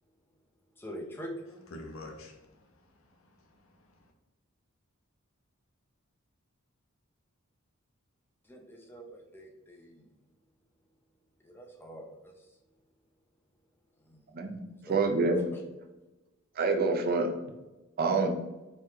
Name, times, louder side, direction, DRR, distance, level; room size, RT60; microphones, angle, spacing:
voice 1, 0.8-1.7 8.4-10.2 11.4-12.6 14.0-15.0 15.5-15.6, equal, 10° left, 0.5 m, -45 dB
voice 2, 1.7-4.1, left 2 dB, 70° left, 0.7 m, -49 dB
voice 3, 14.9-15.4 16.6-17.3 18.0-18.3, right 3 dB, 45° right, 0.4 m, -26 dB
3.8 x 3.1 x 2.7 m
head